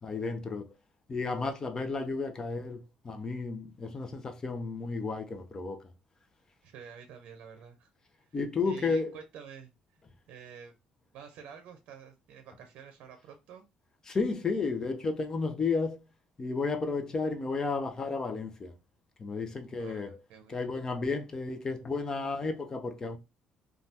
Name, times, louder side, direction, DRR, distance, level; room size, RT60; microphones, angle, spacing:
voice 1, 0.0-0.7 1.1-2.8 3.0-5.8 8.3-9.2 14.1-16.0 16.4-18.7 19.2-20.2 20.5-23.2, left 4 dB, 30° left, 0.5 m, -32 dB
voice 2, 6.6-7.9 8.6-9.7 10.3-10.7 11.1-13.6 19.8-20.7, right 7 dB, 80° right, 0.5 m, -49 dB
3.2 x 2.3 x 2.7 m
cardioid pair, 120°, 2 cm